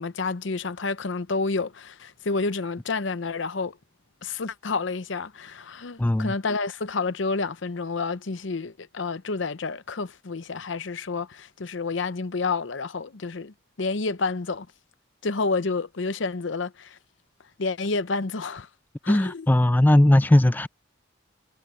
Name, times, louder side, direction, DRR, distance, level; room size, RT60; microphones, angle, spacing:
voice 1, 0.0-3.8 4.2-14.7 15.2-17.0 17.6-18.7 19.0-19.5, left 4 dB, 70° left, 0.8 m, -29 dB
voice 2, 6.0-6.3 19.1-20.7, left 1 dB, 10° left, 0.4 m, -18 dB
head